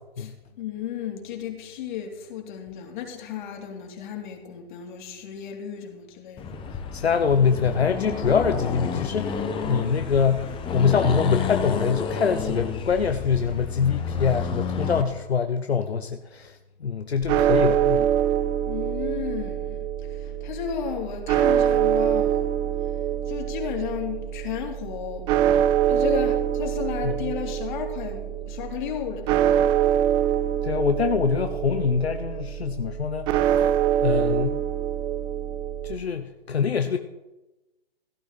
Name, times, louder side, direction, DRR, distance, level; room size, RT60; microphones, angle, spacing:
voice 1, 0.2-6.6 18.7-22.5 23.3-25.3 25.8-29.4, left 9 dB, 50° left, 3.2 m, -34 dB
Accelerating revving vroom, 6.4-15.1, left 6 dB, 15° left, 1.4 m, -30 dB
voice 2, 6.9-18.1 27.0-27.3 30.6-33.6 34.0-34.6 35.8-37.0, left 6 dB, 80° left, 1.0 m, -24 dB
sound 1, 17.2-36.0, right 10 dB, 15° right, 0.4 m, -25 dB
16.5 x 12.0 x 4.2 m
figure-of-eight pair, 125°, 31 cm